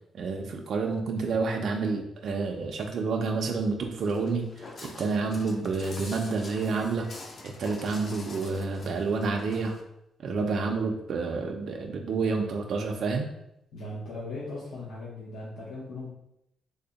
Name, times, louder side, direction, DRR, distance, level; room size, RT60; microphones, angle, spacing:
voice 1, 0.1-7.1 7.4-9.7 10.2-13.3, right 4 dB, 45° right, 2 dB, 0.3 m, -29 dB
Walk footsteps, 4.0-9.8, left 2 dB, 30° left, 0.4 m, -46 dB
voice 2, 13.7-16.1, left 2 dB, 75° left, -7 dB, 0.7 m, -38 dB
3.4 x 2.1 x 3.8 m, 0.81 s
cardioid pair, 175°, 0 cm